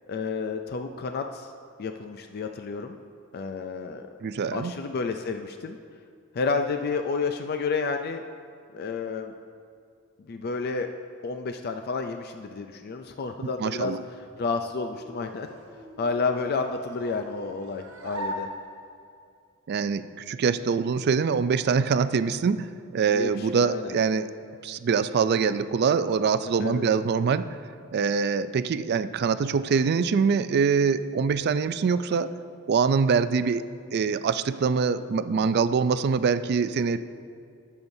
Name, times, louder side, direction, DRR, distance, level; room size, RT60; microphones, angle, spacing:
voice 1, 0.1-1.5 1.8-3.0 3.3-4.1 4.5-5.8 6.3-8.2 8.7-9.3 10.3-10.9 11.2-15.5 16.0-18.5 23.1-23.9 26.6-26.9, left 4 dB, 45° left, 6 dB, 0.4 m, -30 dB
voice 2, 4.2-4.7 13.6-14.0 19.7-22.7 22.9-24.3 24.6-27.5 27.9-32.3 32.7-33.6 33.9-37.0, right 5 dB, 50° right, 13 dB, 0.3 m, -24 dB
sound 1, 14.2-19.2, equal, 70° right, 1.3 m, -40 dB
20.5 x 7.0 x 2.7 m, 2.3 s
head